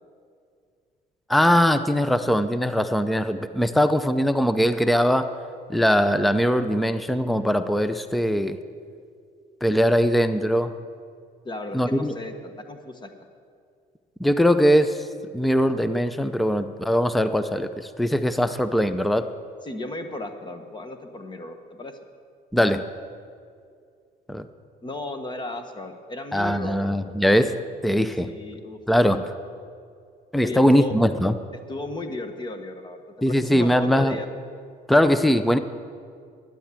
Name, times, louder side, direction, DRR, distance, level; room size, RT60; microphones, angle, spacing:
voice 1, 1.3-5.3 5.7-8.6 9.6-10.7 11.7-12.1 14.2-15.1 15.3-19.3 22.5-22.9 24.3-24.5 26.3-28.3 28.9-29.3 30.3-31.3 33.2-34.2 34.9-35.6, equal, ahead, 11 dB, 0.5 m, -21 dB
voice 2, 11.4-13.1 19.6-22.0 24.8-26.9 28.2-28.8 30.4-31.0 31.7-34.3, left 2 dB, 25° left, 7 dB, 1.2 m, -35 dB
12.0 x 10.0 x 7.5 m, 2.2 s
cardioid pair, 110°, 17 cm